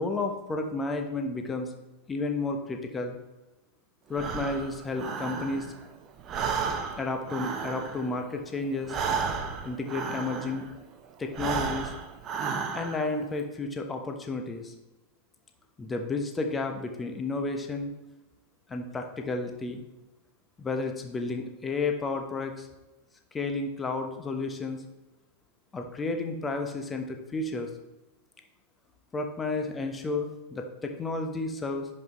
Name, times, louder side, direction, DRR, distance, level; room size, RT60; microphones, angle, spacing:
voice 1, 0.0-1.7 2.1-3.2 4.1-5.7 7.0-9.0 9.6-10.7 11.2-11.9 12.7-14.7 15.8-17.9 18.7-19.8 20.6-22.7 23.3-24.8 25.7-27.7 29.1-31.9, left 3 dB, 15° left, 4 dB, 1.0 m, -32 dB
Breathing, 4.1-5.9 6.2-10.8 11.3-13.2, right 6 dB, 30° right, 0.9 m, -33 dB
10.5 x 5.4 x 3.1 m, 1.1 s
figure-of-eight pair, 90°, 0 cm